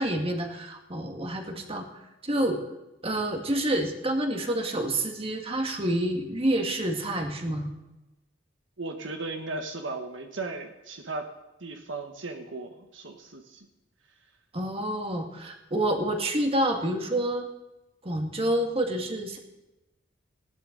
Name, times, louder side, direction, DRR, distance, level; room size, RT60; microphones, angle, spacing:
voice 1, 0.0-2.6 3.0-7.7 14.5-17.5 18.0-19.4, right 1 dB, 30° right, 3 dB, 2.1 m, -28 dB
voice 2, 8.8-11.3 11.6-13.7, right 3 dB, 70° right, 4 dB, 1.4 m, -36 dB
19.5 x 16.0 x 4.0 m, 0.97 s
head